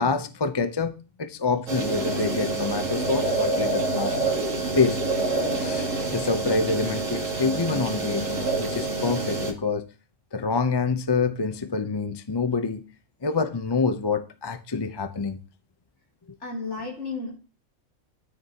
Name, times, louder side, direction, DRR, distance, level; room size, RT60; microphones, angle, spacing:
voice 1, 0.0-4.3 4.8-5.0 5.6-8.3 8.6-9.9 10.3-12.8 13.2-15.4, left 4 dB, 25° left, 0.5 m, -26 dB
sound 1, 1.7-9.5, right 2 dB, 65° right, 2.3 m, -27 dB
voice 2, 16.4-17.4, left 3 dB, 55° left, 3.0 m, -33 dB
13.0 x 9.6 x 2.9 m
omnidirectional pair, 1.5 m